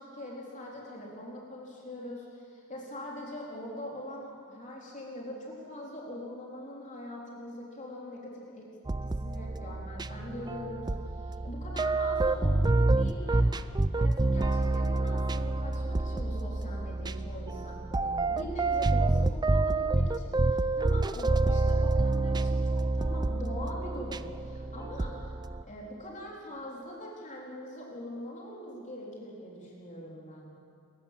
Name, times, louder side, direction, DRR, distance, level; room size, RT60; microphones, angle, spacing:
voice 1, 0.0-8.7 9.0-13.5 14.0-25.1 25.6-30.5, equal, 35° left, -3 dB, 3.7 m, -42 dB
sound 1, 8.9-25.6, right 2 dB, 20° right, 0.5 m, -28 dB
29.0 x 15.0 x 7.5 m, 2.3 s
head